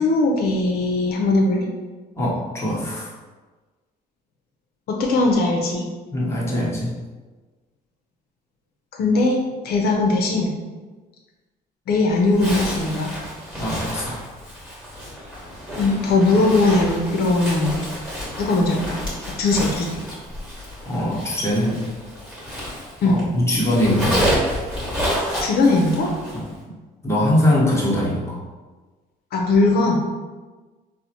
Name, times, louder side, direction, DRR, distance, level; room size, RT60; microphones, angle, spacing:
voice 1, 0.0-1.7 4.9-5.9 8.9-10.5 11.9-13.1 15.8-17.8 18.4-19.0 19.4-19.9 23.0-23.2 25.4-26.1 29.3-30.0, left 2 dB, 65° left, 0 dB, 0.5 m, -19 dB
voice 2, 2.2-3.1 6.1-6.9 13.6-14.2 20.9-21.8 23.0-24.2 26.3-26.4 27.0-28.4, left 1 dB, 15° left, -6 dB, 1.0 m, -22 dB
Zipper (clothing), 12.3-23.2 23.5-26.5, equal, 5° right, 1.4 m, -29 dB
4.0 x 2.0 x 2.8 m, 1.3 s
cardioid pair, 110°, 17 cm